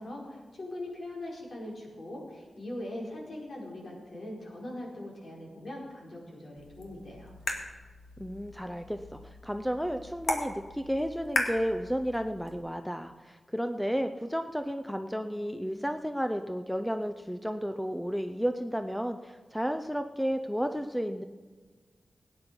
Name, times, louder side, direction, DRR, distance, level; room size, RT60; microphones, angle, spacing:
voice 1, 0.0-7.3, left 1 dB, 55° left, -3 dB, 4.8 m, -41 dB
sound 1, 6.6-12.6, left 2 dB, 70° left, 2.2 m, -37 dB
voice 2, 8.2-21.2, equal, ahead, 7 dB, 0.6 m, -32 dB
18.0 x 9.8 x 5.3 m, 1.4 s
wide cardioid pair, 125°, 0 cm